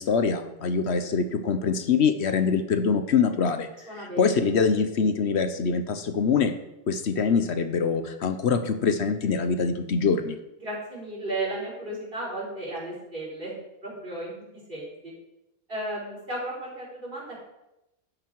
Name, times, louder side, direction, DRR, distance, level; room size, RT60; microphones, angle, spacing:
voice 1, 0.0-3.7 3.9-6.5 6.9-10.4, left 5 dB, 65° left, 9 dB, 1.1 m, -24 dB
voice 2, 3.9-4.3 10.6-13.5 13.8-14.3 14.7-15.1 15.7-17.4, right 1 dB, 50° right, -6 dB, 5.5 m, -34 dB
12.0 x 9.4 x 4.6 m, 0.91 s
omnidirectional pair, 1.2 m